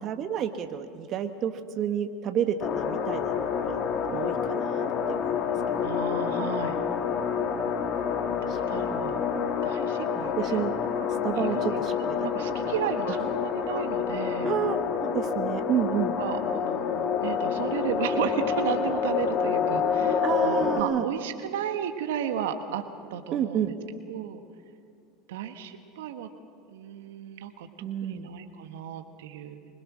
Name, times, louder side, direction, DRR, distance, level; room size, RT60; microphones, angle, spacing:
voice 1, 0.0-3.8 4.1-5.6 8.5-8.6 8.9-9.1 10.1-10.7 11.0-12.3 12.6-12.7 13.1-13.2 14.4-16.2 20.2-21.0 23.3-23.8 27.8-28.3, right 9 dB, 50° right, 8 dB, 1.2 m, -30 dB
sound 1, 2.6-20.8, left 7 dB, 50° left, 1.8 m, -28 dB
voice 2, 5.8-6.7 8.4-9.2 9.6-10.6 11.4-11.8 12.2-14.5 15.9-22.8 23.1-23.6 24.1-24.4 25.3-26.3 26.7-27.7 28.0-29.6, right 9 dB, 75° right, 7 dB, 1.3 m, -34 dB
25.0 x 21.0 x 6.3 m, 2.3 s
hypercardioid pair, 80°, 0 cm